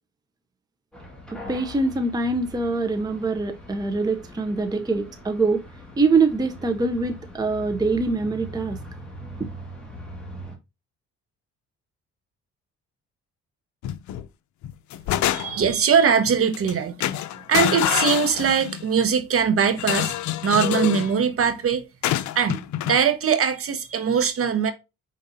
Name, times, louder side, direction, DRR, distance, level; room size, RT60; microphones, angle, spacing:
sound 1, 0.9-10.6, equal, 5° left, 1.7 m, -41 dB
voice 1, 1.3-5.6 6.0-8.8, right 3 dB, 15° right, 0.6 m, -24 dB
sound 2, 13.8-14.2 14.6-15.8 16.5-16.7 17.0-18.8 19.8-21.1 22.0-23.0, left 13 dB, 75° left, 0.5 m, -26 dB
voice 2, 15.3-17.0 17.4-20.1 20.4-21.8 22.3-24.7, right 6 dB, 50° right, 0.9 m, -21 dB
5.1 x 3.8 x 2.7 m
cardioid pair, 90°, 30 cm